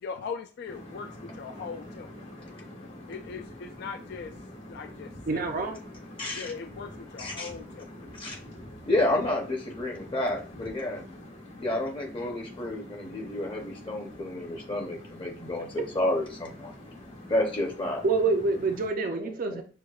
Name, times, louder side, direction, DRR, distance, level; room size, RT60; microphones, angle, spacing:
voice 1, 0.0-2.1 3.1-4.3 4.7-5.8 6.3-7.9 17.6-17.7, left 5 dB, 55° left, 6 dB, 0.3 m, -40 dB
sound 1, 0.6-18.9, left 1 dB, 80° left, 1.5 m, -46 dB
voice 2, 5.3-5.8 18.0-19.6, right 3 dB, 45° right, 5 dB, 0.4 m, -27 dB
voice 3, 6.2-6.5 7.2-7.5 8.1-8.4 8.9-11.0 11.6-16.7 17.3-18.0 19.0-19.6, left 1 dB, 25° left, 2 dB, 0.7 m, -30 dB
6.2 x 2.2 x 2.3 m, 0.37 s
head